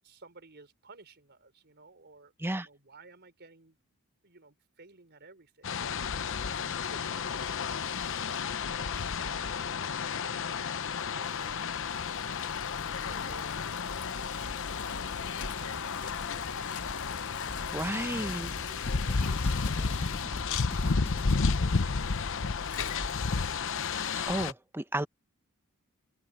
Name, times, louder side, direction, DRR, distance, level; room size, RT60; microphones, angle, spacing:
voice 1, 0.0-3.8 4.2-6.0 6.6-8.0 8.4-12.6 13.0-16.6 17.4-17.9 18.3-23.3, right 3 dB, 50° right, 4.6 m, -56 dB
sound 1, 5.6-24.5, left 5 dB, 60° left, 0.8 m, -32 dB
Bicycle, 10.9-24.0, left 4 dB, 80° left, 2.1 m, -45 dB
sound 2, 17.5-21.9, left 1 dB, 25° left, 1.3 m, -43 dB
voice 2, 17.7-18.5 24.3-25.1, right 1 dB, 10° right, 0.9 m, -32 dB
head